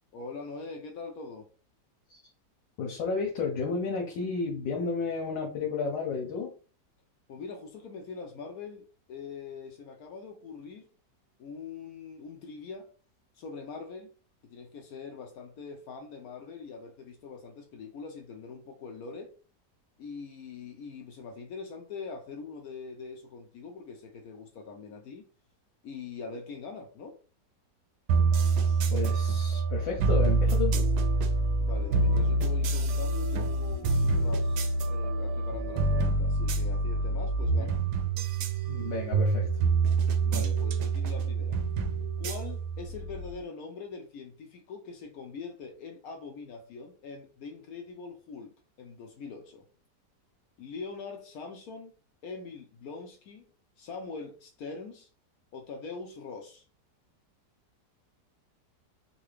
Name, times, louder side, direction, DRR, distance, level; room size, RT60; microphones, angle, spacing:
voice 1, 0.1-1.5 7.3-10.9 11.4-12.9 13.4-14.1 14.4-19.3 20.0-25.3 25.8-27.2 31.6-37.8 40.2-41.6 42.2-48.5 48.8-49.7 50.6-51.9 52.2-53.5 53.8-55.1 55.5-56.6, left 4 dB, 70° left, 0.9 m, -43 dB
voice 2, 2.8-6.5 28.9-30.9 38.7-39.5, left 5 dB, 85° left, 1.4 m, -32 dB
sound 1, 28.1-43.3, right 3 dB, 75° right, 1.1 m, -26 dB
3.9 x 2.2 x 3.1 m
omnidirectional pair, 1.9 m